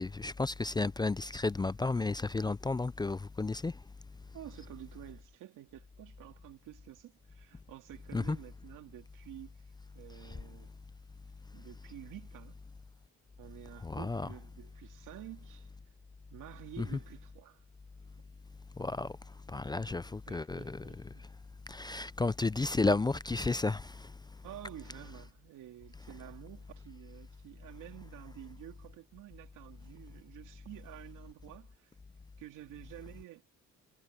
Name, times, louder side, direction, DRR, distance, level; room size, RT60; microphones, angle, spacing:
voice 1, 0.0-3.7 8.1-8.4 13.8-14.2 16.8-16.9 18.8-19.1 19.5-20.8 21.7-23.9, left 3 dB, 15° left, 0.4 m, -32 dB
voice 2, 4.3-9.6 9.9-10.7 11.5-12.6 13.4-15.7 16.3-17.6 20.2-21.3 24.4-31.9 32.4-33.4, right 14 dB, 85° right, 2.7 m, -50 dB
cardioid pair, 90°, 30 cm